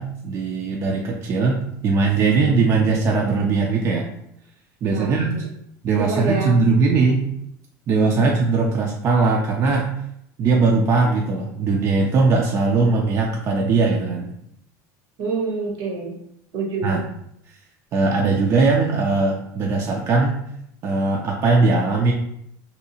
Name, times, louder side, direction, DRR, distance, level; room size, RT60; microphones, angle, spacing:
voice 1, 0.0-4.1 4.8-5.3 5.8-7.2 7.9-9.9 10.4-14.4 16.8-17.0 17.9-20.4 20.8-22.1, right 4 dB, 35° right, 0 dB, 0.3 m, -20 dB
voice 2, 4.9-5.5 6.0-6.5 6.8-7.1 8.1-8.3 15.2-16.2 16.5-17.0, right 4 dB, 60° right, 1 dB, 0.8 m, -27 dB
2.7 x 2.3 x 2.7 m, 0.76 s
supercardioid pair, 115°, 9 cm